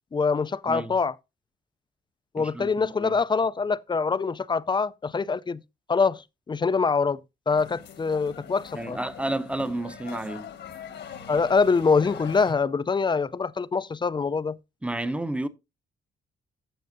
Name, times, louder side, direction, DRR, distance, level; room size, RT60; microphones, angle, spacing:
voice 1, 0.1-1.1 2.3-5.6 5.9-6.2 6.5-7.2 7.5-9.0 11.3-14.6, left 5 dB, 25° left, 0.4 m, -24 dB
voice 2, 0.7-1.0 2.4-3.2 8.7-10.5 14.8-15.5, right 1 dB, 5° right, 0.8 m, -31 dB
sound 1, 7.5-12.5, left 8 dB, 65° left, 1.3 m, -42 dB
13.5 x 6.5 x 2.6 m
cardioid pair, 90°, 20 cm